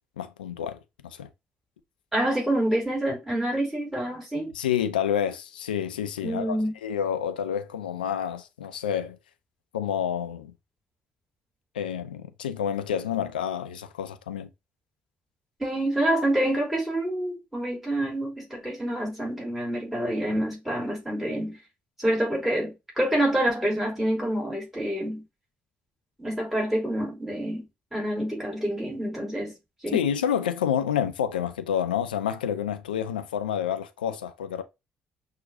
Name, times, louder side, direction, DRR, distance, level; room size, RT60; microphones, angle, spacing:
voice 1, 0.2-1.3 4.5-9.2 9.7-10.5 11.7-14.5 29.9-34.6, left 9 dB, 90° left, 0.4 m, -29 dB
voice 2, 2.1-4.5 6.2-6.7 15.6-21.6 22.0-25.2 26.2-29.5 29.8-30.0, right 1 dB, 5° right, 2.9 m, -27 dB
6.0 x 2.8 x 2.4 m
hypercardioid pair, 50°, 5 cm